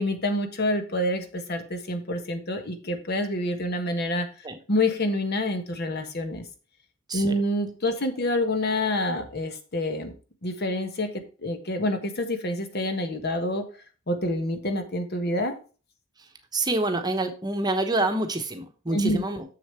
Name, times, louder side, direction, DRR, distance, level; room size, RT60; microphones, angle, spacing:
voice 1, 0.0-4.3 4.7-6.4 7.1-10.1 10.4-13.6 14.1-15.5 18.9-19.2, left 1 dB, 55° left, 7 dB, 1.3 m, -27 dB
voice 2, 16.2-19.6, right 2 dB, 20° right, 6 dB, 1.0 m, -27 dB
7.1 x 7.0 x 4.5 m, 0.36 s
head